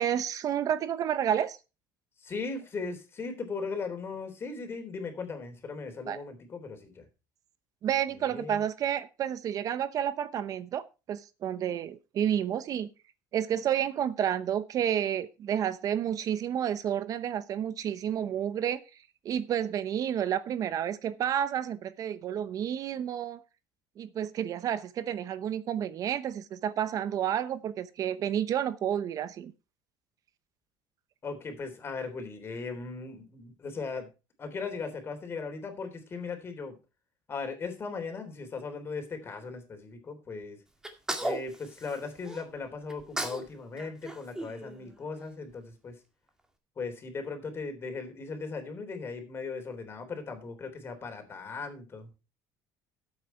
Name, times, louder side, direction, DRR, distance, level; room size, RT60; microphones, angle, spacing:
voice 1, 0.0-1.6 6.1-6.2 7.8-12.9 13.3-18.8 19.2-23.4 24.0-29.5, right 9 dB, 45° right, 14 dB, 0.8 m, -30 dB
voice 2, 2.2-7.1 8.3-8.6 31.2-34.1 34.4-36.8 37.3-40.6 41.2-46.0 46.8-52.1, left 4 dB, 30° left, 6 dB, 3.6 m, -38 dB
Sneeze, 40.8-42.4 42.9-43.5 43.8-45.2, right 1 dB, 5° right, 2.1 m, -36 dB
13.0 x 8.3 x 4.5 m, 0.31 s
cardioid pair, 130°, 8 cm